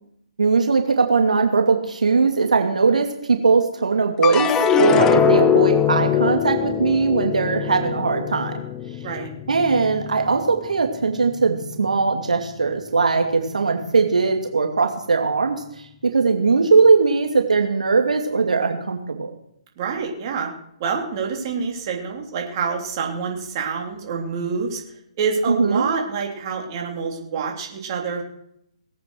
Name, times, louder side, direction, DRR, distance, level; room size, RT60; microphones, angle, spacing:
voice 1, 0.4-4.5 4.8-8.5 9.5-15.6 16.0-19.3 25.5-25.9, right 4 dB, 85° right, 4 dB, 2.5 m, -19 dB
sound 1, 4.2-10.7 11.1-11.8, left 8 dB, 15° left, 0.6 m, -22 dB
voice 2, 19.8-20.5 20.8-24.8 25.2-28.2, right 5 dB, 35° right, 1 dB, 3.3 m, -27 dB
19.5 x 8.6 x 6.5 m, 0.76 s
hypercardioid pair, 155°, 4 cm